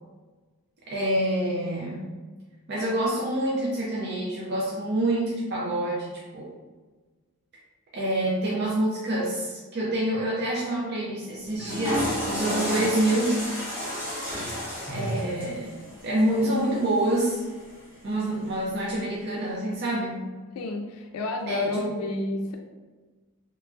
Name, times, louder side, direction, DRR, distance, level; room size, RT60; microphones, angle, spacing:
voice 1, 0.9-2.1 2.7-6.1 6.3-6.5 7.9-13.4 14.9-15.7 16.0-17.4 18.0-20.2 21.5-21.8, right 1 dB, 45° right, -5 dB, 0.4 m, -27 dB
Water / Toilet flush, 11.4-17.7, equal, 10° right, 0.7 m, -32 dB
voice 2, 20.5-22.6, left 2 dB, 90° left, 2 dB, 0.3 m, -30 dB
3.0 x 2.3 x 2.4 m, 1.3 s
head